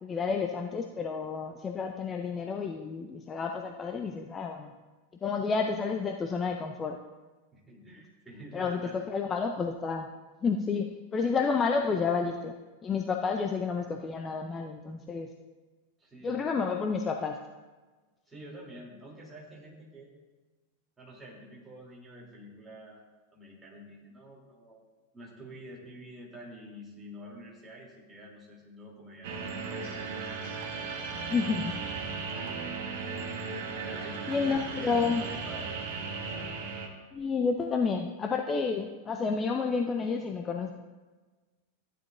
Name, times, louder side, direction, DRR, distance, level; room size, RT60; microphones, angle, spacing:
voice 1, 0.0-4.7 5.2-7.0 8.5-10.1 10.4-12.5 12.8-15.3 16.2-17.4 31.3-31.7 34.3-35.2 37.1-40.7, left 5 dB, 20° left, 3 dB, 0.6 m, -30 dB
voice 2, 7.5-9.0 16.0-16.5 18.3-20.1 21.0-23.0 23.3-24.8 25.1-30.3 33.8-35.8 36.1-36.5, right 1 dB, 10° right, -4 dB, 3.0 m, -48 dB
sound 1, 29.2-36.9, right 4 dB, 50° right, 1.2 m, -36 dB
14.5 x 9.9 x 2.6 m, 1.3 s
figure-of-eight pair, 90°, 0 cm